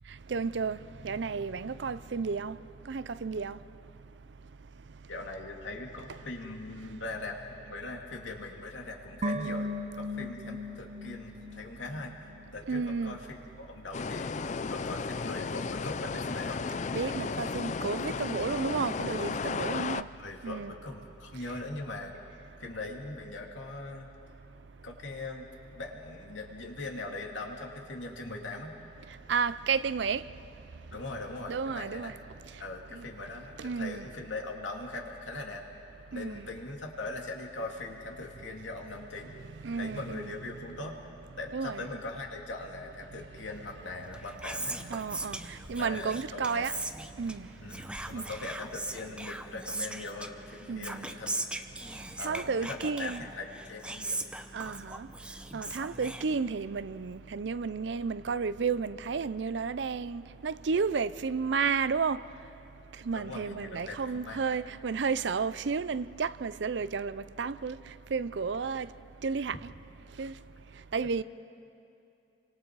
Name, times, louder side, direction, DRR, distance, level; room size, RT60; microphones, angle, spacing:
voice 1, 0.3-0.8 1.0-2.6 2.9-3.6 12.7-13.2 16.9-20.1 20.4-20.7 29.3-30.2 31.5-32.1 32.9-33.1 33.6-34.0 36.1-36.4 39.6-40.3 41.5-41.8 44.9-45.4 45.7-46.8 47.2-47.5 48.1-48.2 50.7-51.1 52.2-53.2 54.5-55.1 55.5-62.2 63.1-67.8 68.1-68.9 69.2-69.6 70.2-70.3 70.9-71.2, right 5 dB, 70° right, 0.5 m, -32 dB
voice 2, 5.1-9.7 9.9-12.1 12.5-14.3 14.7-16.6 19.7-22.1 22.6-24.1 24.8-25.5 25.7-28.8 30.9-32.2 32.6-35.6 36.1-39.4 39.7-41.0 41.4-44.8 45.8-46.7 47.6-51.6 52.2-54.2 63.1-64.6, left 2 dB, 90° left, 2.7 m, -40 dB
sound 1, 9.2-12.5 12.8-12.9, left 1 dB, 35° right, 0.8 m, -37 dB
sound 2, 13.9-20.0, left 4 dB, 40° left, 0.4 m, -34 dB
Whispering, 44.0-56.8, right 2 dB, 5° right, 0.7 m, -40 dB
30.0 x 25.5 x 4.8 m
head